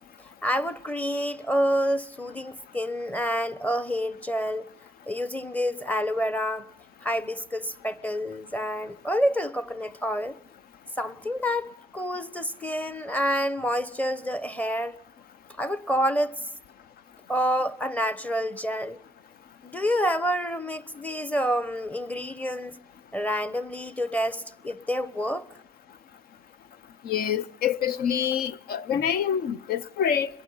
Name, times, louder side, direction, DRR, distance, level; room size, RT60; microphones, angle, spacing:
voice 1, 0.4-4.7 5.1-6.7 7.0-10.4 11.0-15.0 15.6-16.3 17.3-19.0 19.6-22.8 23.1-25.5 28.9-29.0, equal, 10° left, 1.0 m, -28 dB
voice 2, 27.0-30.3, left 8 dB, 65° left, 0.8 m, -26 dB
26.0 x 22.0 x 5.6 m
cardioid pair, 110°, 17 cm